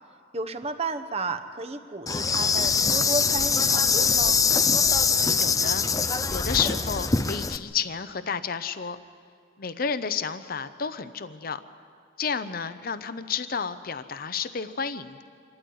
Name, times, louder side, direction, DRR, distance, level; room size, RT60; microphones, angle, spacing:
voice 1, 0.3-4.4, right 3 dB, 35° right, 7 dB, 1.1 m, -32 dB
Insect, 2.1-7.6, left 5 dB, 20° left, 0.5 m, -23 dB
voice 2, 5.4-5.8 6.3-9.0 9.6-11.6 12.2-15.2, left 6 dB, 50° left, 11 dB, 0.7 m, -31 dB
26.0 x 12.5 x 9.5 m, 2.3 s
head